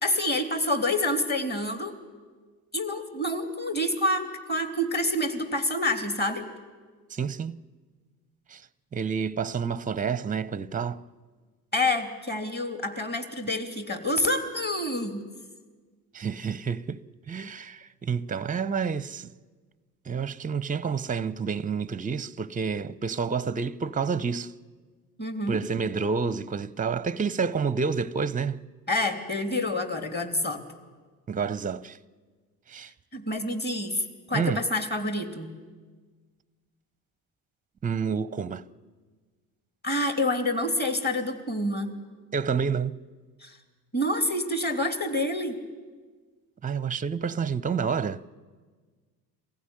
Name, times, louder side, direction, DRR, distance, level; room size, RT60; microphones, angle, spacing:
voice 1, 0.0-2.0 2.7-6.5 11.7-15.2 25.2-25.6 28.9-30.6 33.1-35.5 39.8-41.9 43.4-43.6 43.9-45.6, left 1 dB, 20° left, 3.2 m, -27 dB
voice 2, 7.1-7.6 8.5-8.6 8.9-11.0 16.1-17.0 17.3-19.3 20.1-24.5 25.5-28.6 31.3-32.0 32.7-32.9 34.3-34.6 37.8-38.6 42.3-43.0 46.6-48.2, right 6 dB, 15° right, 0.7 m, -29 dB
23.0 x 16.0 x 9.9 m
hypercardioid pair, 60°, 49 cm